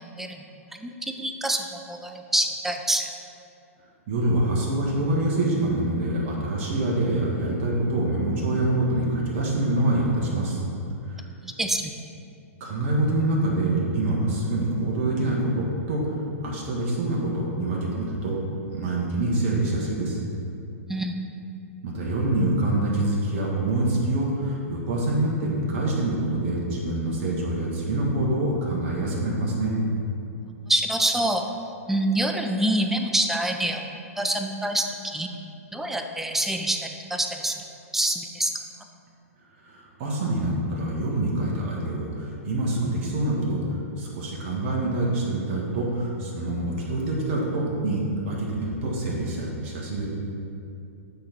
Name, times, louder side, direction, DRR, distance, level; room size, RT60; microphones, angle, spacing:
voice 1, 0.7-3.1 11.4-11.9 20.9-21.2 30.6-31.4 31.9-33.8 34.2-35.3 35.7-37.5 37.9-38.5, right 1 dB, 5° right, 4 dB, 0.4 m, -26 dB
voice 2, 4.1-10.6 11.0-11.3 12.6-18.4 18.7-20.2 21.8-29.7 39.6-50.1, right 1 dB, 45° right, -3 dB, 1.4 m, -26 dB
8.6 x 4.0 x 4.4 m, 2.7 s
figure-of-eight pair, 110°, 8 cm